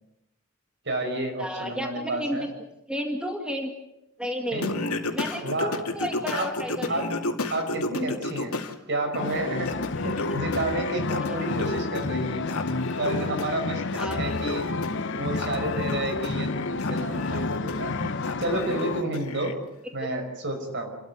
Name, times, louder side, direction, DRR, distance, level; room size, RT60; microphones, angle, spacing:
voice 1, 0.8-2.5 4.5-4.7 5.4-5.8 6.3-6.6 6.9-7.2 7.5-8.6 8.9-12.5 13.0-14.8 15.1-18.1 18.4-19.6 19.9-21.0, right 1 dB, 55° right, 6 dB, 5.4 m, -30 dB
voice 2, 1.4-2.5 2.9-3.7 4.2-4.6 5.1-7.1 10.2-10.3 11.2-11.4 14.0-14.4, equal, 5° right, 3 dB, 2.1 m, -32 dB
Singing, 4.6-8.7 9.1-19.5, left 2 dB, 90° left, 2.5 m, -33 dB
sound 1, 9.2-19.0, left 3 dB, 55° left, 1.0 m, -30 dB
29.0 x 13.5 x 9.4 m, 0.90 s
head